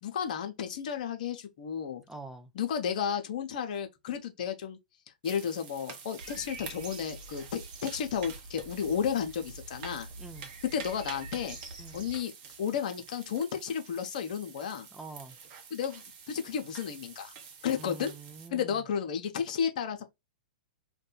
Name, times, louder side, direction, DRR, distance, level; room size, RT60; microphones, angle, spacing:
voice 1, 0.0-2.0 2.5-4.8 5.2-10.1 10.7-11.6 11.9-12.3 12.6-14.9 15.7-17.3 17.6-18.1 18.5-20.0, left 7 dB, 60° left, 0.8 m, -33 dB
voice 2, 2.1-2.5 10.2-10.5 11.8-12.0 14.9-15.4 17.7-18.8, right 3 dB, 5° right, 0.6 m, -46 dB
sound 1, 5.2-18.5, right 6 dB, 45° right, 0.9 m, -48 dB
sound 2, 6.2-12.2, right 2 dB, 60° right, 1.3 m, -46 dB
2.6 x 2.3 x 4.1 m
hypercardioid pair, 110°, 5 cm